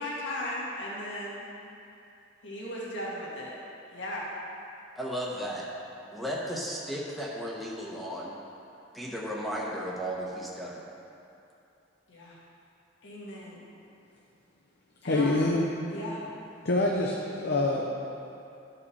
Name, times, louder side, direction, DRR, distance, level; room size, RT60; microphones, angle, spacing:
voice 1, 0.0-1.5 2.4-3.5 3.9-4.3 12.1-12.4 13.0-13.6 15.0-15.5 15.9-16.2, left 1 dB, 80° left, -6 dB, 1.8 m, -37 dB
voice 2, 5.0-5.7 6.1-8.4 8.9-10.8, equal, ahead, -5 dB, 0.9 m, -34 dB
voice 3, 15.1-15.7 16.6-17.8, left 2 dB, 60° left, -2 dB, 0.7 m, -25 dB
12.0 x 5.4 x 4.2 m, 2.7 s
head